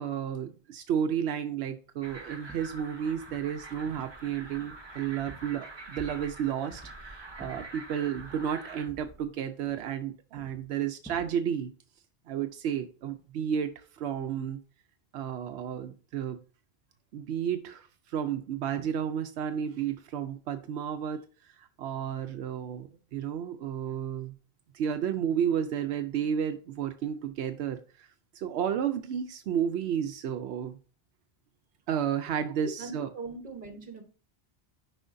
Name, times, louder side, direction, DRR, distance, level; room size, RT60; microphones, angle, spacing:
voice 1, 0.0-11.7 12.3-14.6 15.1-16.4 17.1-24.4 24.7-30.8 31.9-33.1, right 8 dB, 85° right, 7 dB, 0.8 m, -32 dB
sound 1, 2.0-8.9, right 2 dB, 25° right, 1.1 m, -46 dB
neighbour's footsteps, 2.5-2.8 3.2-3.4 3.9-4.3 4.6-5.7 5.9-6.4 6.7-7.0 7.4-8.5 8.9-10.1 10.4-10.7 11.0-11.4, right 2 dB, 5° left, 0.9 m, -50 dB
voice 2, 32.6-34.0, right 3 dB, 50° right, 4 dB, 1.4 m, -41 dB
9.8 x 5.0 x 2.6 m, 0.37 s
omnidirectional pair, 1.1 m